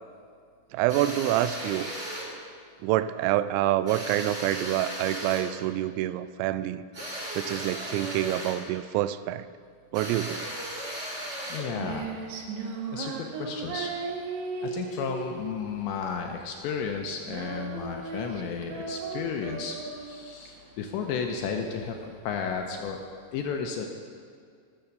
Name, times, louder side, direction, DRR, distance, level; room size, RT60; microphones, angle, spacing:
voice 1, 0.7-1.9 2.8-6.8 7.4-9.5 9.9-10.5, right 14 dB, 85° right, 14 dB, 3.1 m, -27 dB
sound 1, 0.9-2.3 3.9-5.5 6.9-8.7 9.9-11.8, equal, 35° right, 1.0 m, -36 dB
Female singing, 11.2-22.2, right 5 dB, 70° right, 2.3 m, -37 dB
voice 2, 11.5-12.1 12.9-13.9 14.6-23.1 23.3-23.9, left 6 dB, 80° left, 3 dB, 2.7 m, -33 dB
19.5 x 7.1 x 6.6 m, 2.3 s
omnidirectional pair, 5.8 m